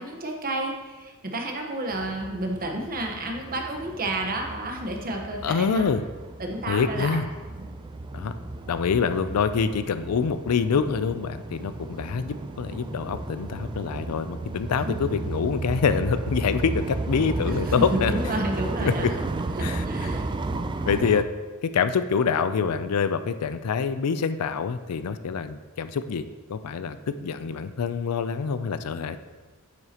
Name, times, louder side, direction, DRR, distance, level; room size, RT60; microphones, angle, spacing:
voice 1, 0.0-5.9 6.4-7.2 14.8-14.9 17.6-19.2 19.5-20.3, right 1 dB, 40° right, 2 dB, 1.1 m, -31 dB
sound 1, 1.9-21.2, right 2 dB, 20° right, 0.3 m, -33 dB
voice 2, 5.4-6.0 6.7-7.3 8.1-8.3 8.7-18.1 18.8-19.1 19.6-19.8 20.8-21.2 21.7-26.2 26.5-29.2, left 6 dB, 85° left, 11 dB, 0.4 m, -26 dB
9.4 x 8.0 x 2.9 m, 1.3 s
head